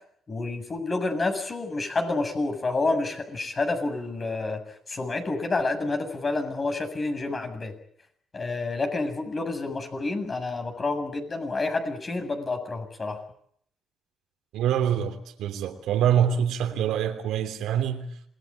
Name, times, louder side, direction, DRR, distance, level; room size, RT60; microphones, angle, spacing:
voice 1, 0.3-4.6 4.9-7.7 8.3-13.2, left 3 dB, 35° left, 7.4 m, -29 dB
voice 2, 14.5-18.1, right 9 dB, 85° right, 3.1 m, -25 dB
27.5 x 20.0 x 8.8 m
cardioid pair, 90°, 0 cm